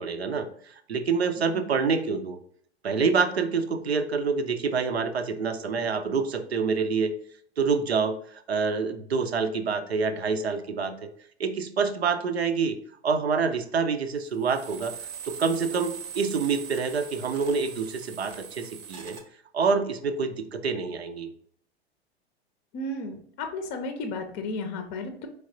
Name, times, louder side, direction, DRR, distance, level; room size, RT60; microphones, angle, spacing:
voice 1, 0.0-2.4 2.8-7.1 7.6-11.1 11.4-12.8 13.0-15.0 15.2-19.2 19.5-21.3, right 5 dB, 80° right, 9 dB, 0.5 m, -27 dB
sound 1, 14.4-19.2, right 8 dB, 35° right, 0.7 m, -41 dB
voice 2, 22.7-25.3, left 2 dB, 30° left, 6 dB, 0.6 m, -33 dB
4.5 x 3.3 x 2.5 m, 0.64 s
figure-of-eight pair, 90°, 32 cm